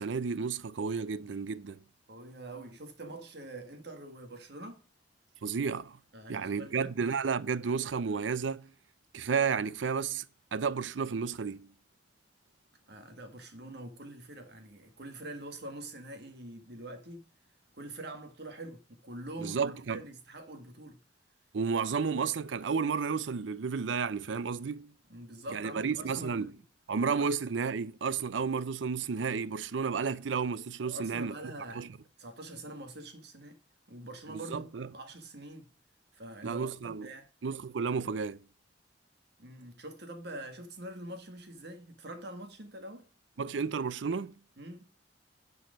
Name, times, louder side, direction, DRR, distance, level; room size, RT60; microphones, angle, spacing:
voice 1, 0.0-1.8 5.4-6.0 6.3-8.7 9.1-10.2 10.5-11.7 19.4-20.0 21.5-24.9 25.5-26.5 26.9-31.9 34.3-34.9 36.4-37.1 37.4-38.5 43.4-44.4, right 5 dB, 85° right, 0.5 m, -32 dB
voice 2, 2.1-4.8 6.1-6.9 12.9-17.3 17.7-19.6 19.9-21.0 25.1-26.6 27.2-27.3 30.8-31.9 32.2-33.6 33.9-35.7 36.1-37.3 39.4-43.1 44.6-44.9, right 1 dB, 60° right, 1.8 m, -45 dB
10.0 x 4.8 x 5.1 m
head